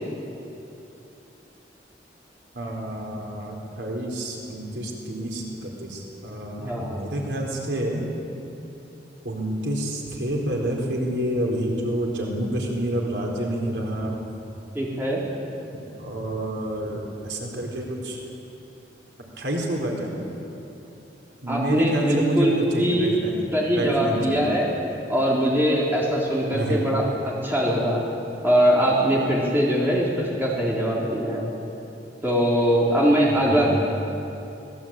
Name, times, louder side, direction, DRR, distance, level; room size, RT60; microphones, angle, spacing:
voice 1, 2.5-8.0 9.2-14.2 16.0-18.2 19.4-20.3 21.4-23.4 23.7-24.5 26.5-26.9 33.3-33.7, right 1 dB, 80° right, -1 dB, 4.2 m, -28 dB
voice 2, 6.6-7.1 14.7-15.2 21.5-23.1 23.5-24.7 25.1-28.0 28.4-31.5 32.2-33.7, equal, 10° right, -4 dB, 3.8 m, -22 dB
25.0 x 19.5 x 8.9 m, 2.9 s
head